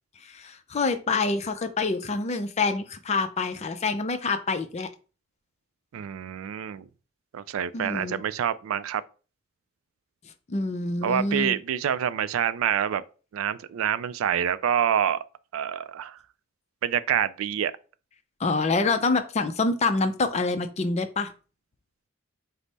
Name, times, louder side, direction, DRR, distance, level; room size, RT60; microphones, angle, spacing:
voice 1, 0.2-4.9 7.7-8.2 10.5-11.6 18.4-21.3, left 3 dB, 35° left, 0.5 m, -26 dB
voice 2, 5.9-6.9 7.3-9.0 11.0-13.0 13.3-15.2 15.5-16.2 16.8-17.7, right 9 dB, 90° right, 0.3 m, -27 dB
5.1 x 2.1 x 4.0 m
head